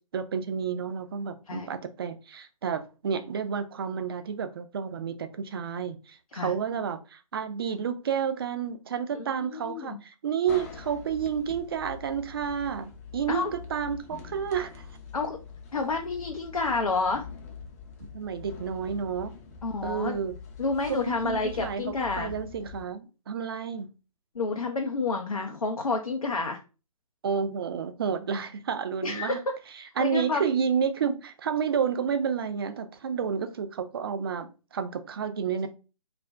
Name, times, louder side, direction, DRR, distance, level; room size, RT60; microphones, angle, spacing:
voice 1, 0.1-14.9 18.1-19.3 19.8-20.3 20.9-23.9 27.2-29.4 30.0-35.7, right 7 dB, 45° right, 0.4 m, -30 dB
voice 2, 9.2-10.0 13.3-13.5 15.1-15.4 15.7-17.3 19.6-20.2 20.6-22.3 24.3-26.6 29.0-29.4 29.8-30.5, left 4 dB, 80° left, 0.5 m, -29 dB
sound 1, 10.5-22.8, left 6 dB, 25° left, 0.5 m, -44 dB
2.4 x 2.1 x 3.3 m
figure-of-eight pair, 130°, 18 cm